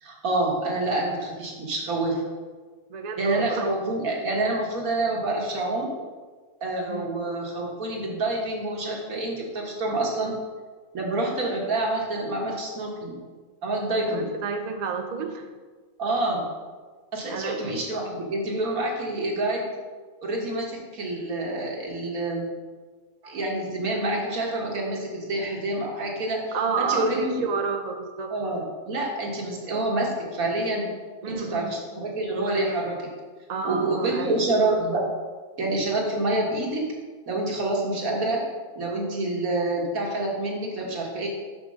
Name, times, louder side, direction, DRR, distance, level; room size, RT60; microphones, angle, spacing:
voice 1, 0.0-2.2 3.2-5.9 6.6-10.4 10.9-13.2 13.6-14.3 16.0-16.4 17.1-19.7 20.2-22.4 23.2-27.4 28.3-30.9 31.3-33.1 33.6-35.1 35.6-36.9 37.3-38.5 38.8-41.3, right 2 dB, 70° right, -2 dB, 1.9 m, -27 dB
voice 2, 2.9-3.7 6.9-7.1 10.0-10.4 14.1-15.5 17.3-17.7 26.5-28.3 31.2-31.7 33.5-34.4, right 5 dB, 45° right, 5 dB, 0.5 m, -30 dB
6.0 x 5.0 x 6.3 m, 1.4 s
omnidirectional pair, 1.5 m